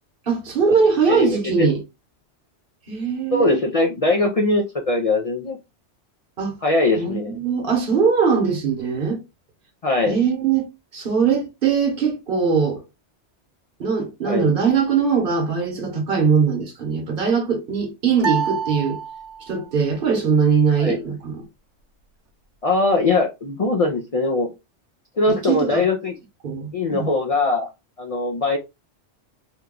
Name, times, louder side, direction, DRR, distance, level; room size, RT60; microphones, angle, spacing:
voice 1, 0.3-1.8 2.9-3.6 6.4-6.5 7.0-9.2 10.1-10.6 10.9-12.8 13.8-19.0 19.4-21.4 25.3-25.8 26.4-27.1, right 5 dB, 50° right, 1.1 m, -21 dB
voice 2, 1.1-1.7 3.3-5.6 6.6-7.4 9.8-10.2 14.2-14.5 20.8-21.0 22.6-24.5 25.2-26.2 26.7-27.7 28.0-28.6, left 2 dB, 55° left, 0.4 m, -21 dB
sound 1, 18.2-19.7, right 7 dB, 75° right, 1.0 m, -27 dB
3.0 x 2.2 x 3.6 m
omnidirectional pair, 1.2 m